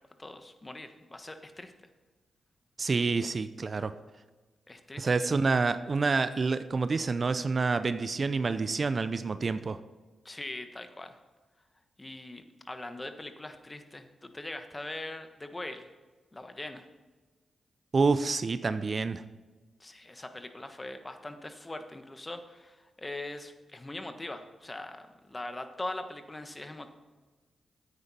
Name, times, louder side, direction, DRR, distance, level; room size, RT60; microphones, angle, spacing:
voice 1, 0.2-1.7 4.7-5.0 10.2-11.2 12.0-15.9 16.3-16.8 19.8-26.9, left 2 dB, 25° left, 8 dB, 1.3 m, -41 dB
voice 2, 2.8-3.9 5.0-9.8 17.9-19.2, right 4 dB, 50° right, 12 dB, 0.5 m, -28 dB
9.9 x 8.8 x 4.2 m, 1.3 s
supercardioid pair, 45°, 0 cm